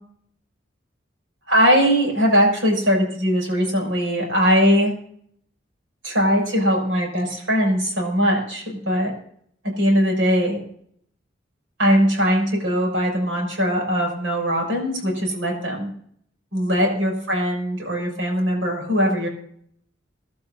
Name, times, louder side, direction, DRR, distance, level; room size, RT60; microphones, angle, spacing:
voice 1, 1.5-4.9 6.0-9.1 9.8-10.6 11.8-15.9 16.5-19.3, equal, 85° right, 0 dB, 6.7 m, -20 dB
24.0 x 12.0 x 2.8 m, 0.66 s
head